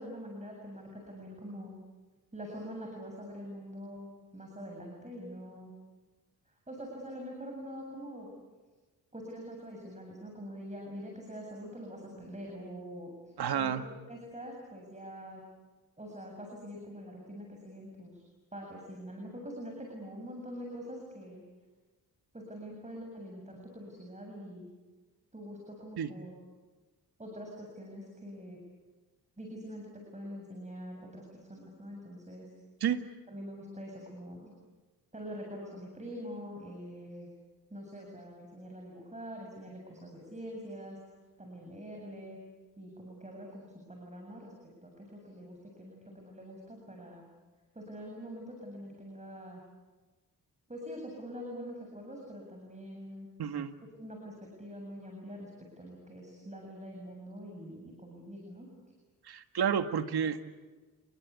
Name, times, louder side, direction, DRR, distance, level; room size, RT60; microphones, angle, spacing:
voice 1, 0.0-1.8 2.3-5.7 6.7-8.3 9.1-13.1 13.6-15.4 16.0-18.2 18.5-21.4 22.3-24.7 25.3-26.3 27.2-28.6 29.4-32.5 33.3-34.5 35.1-37.3 37.7-41.0 41.4-42.4 42.8-44.5 44.8-47.3 47.7-49.6 50.7-53.3 54.0-58.7, equal, 20° right, 1 dB, 7.7 m, -44 dB
voice 2, 13.4-13.8 26.0-26.1 32.8-33.0 53.4-53.7 59.3-60.4, right 8 dB, 80° right, 8 dB, 1.9 m, -30 dB
29.5 x 21.0 x 8.5 m, 1.3 s
cardioid pair, 70°, 38 cm